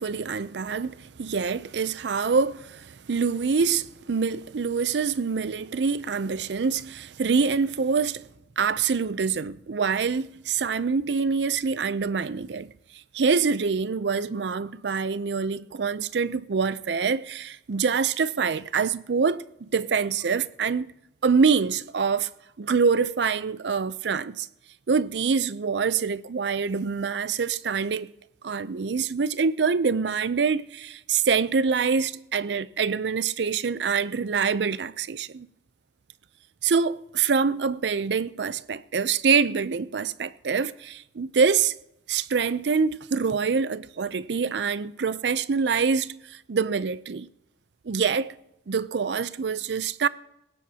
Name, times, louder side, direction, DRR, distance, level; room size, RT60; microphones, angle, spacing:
voice 1, 0.0-8.3 8.6-12.7 13.1-20.9 21.2-22.3 22.6-24.5 24.9-28.1 28.4-35.5 36.6-41.7 42.1-47.3 47.8-48.3 48.7-50.1, right 5 dB, 80° right, 0.5 m, -25 dB
19.0 x 16.5 x 2.9 m
head